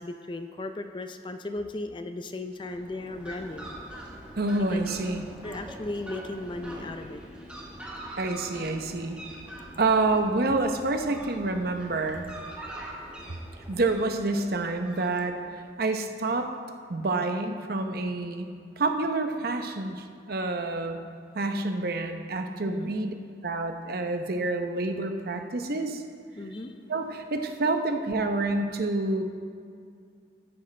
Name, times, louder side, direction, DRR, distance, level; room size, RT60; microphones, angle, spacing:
voice 1, 0.0-3.8 4.7-4.8 5.4-7.2 22.6-22.9 26.3-26.8, left 2 dB, 25° left, 7 dB, 0.5 m, -36 dB
Fowl, 2.5-15.5, right 1 dB, 5° right, 1.6 m, -43 dB
voice 2, 4.4-5.2 8.2-9.2 9.8-12.3 13.7-16.5 16.9-18.5 18.8-21.0 21.3-23.1 23.4-26.0 26.9-29.2, right 2 dB, 60° right, 5 dB, 0.8 m, -28 dB
13.5 x 9.8 x 3.3 m, 2.3 s
head